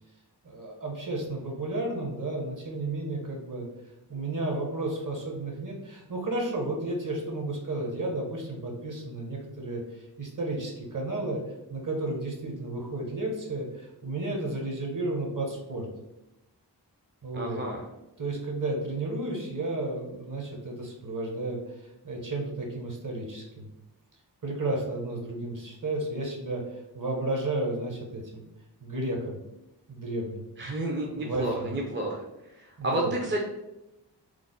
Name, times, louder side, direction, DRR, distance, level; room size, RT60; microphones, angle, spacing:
voice 1, 0.4-3.7 4.1-11.4 11.7-15.9 17.2-17.7 18.2-23.7 24.4-28.5 28.8-29.4 29.9-30.4 31.2-31.8 32.8-33.1, right 2 dB, 50° right, 0 dB, 0.9 m, -32 dB
voice 2, 17.3-17.8 30.6-32.2 32.8-33.4, right 1 dB, 30° right, 0 dB, 0.4 m, -30 dB
3.2 x 2.0 x 3.7 m, 0.92 s
wide cardioid pair, 65°, 42 cm